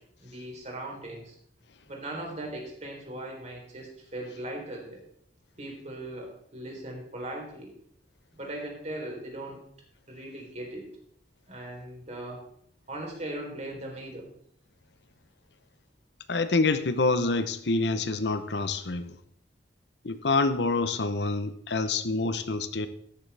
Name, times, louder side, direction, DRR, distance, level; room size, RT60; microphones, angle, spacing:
voice 1, 0.2-1.4 1.9-5.0 5.6-7.7 8.3-9.6 10.1-10.9 11.5-12.4 12.9-14.3, right 1 dB, 40° right, 0 dB, 3.7 m, -39 dB
voice 2, 16.3-19.1 20.0-22.9, left 3 dB, 75° left, 11 dB, 0.8 m, -27 dB
13.5 x 11.5 x 3.4 m, 0.67 s
head